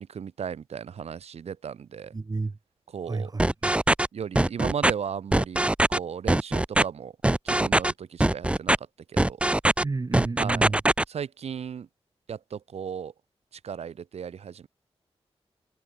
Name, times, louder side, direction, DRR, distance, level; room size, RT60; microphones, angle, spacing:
voice 1, 0.0-2.1 2.9-3.3 4.1-7.1 7.4-8.7 9.1-9.4 10.4-10.7 11.1-11.9 12.3-13.1 13.6-14.7, right 7 dB, 90° right, 7.0 m, -35 dB
voice 2, 2.1-2.5 3.1-3.7 9.8-10.8, right 3 dB, 35° right, 2.7 m, -30 dB
sound 1, 3.4-4.1 4.4-4.9 5.3-6.0 6.3-6.8 7.2-7.9 8.2-8.8 9.2-9.8 10.1-11.0, right 1 dB, 10° right, 0.6 m, -21 dB
cardioid pair, 75°, 10 cm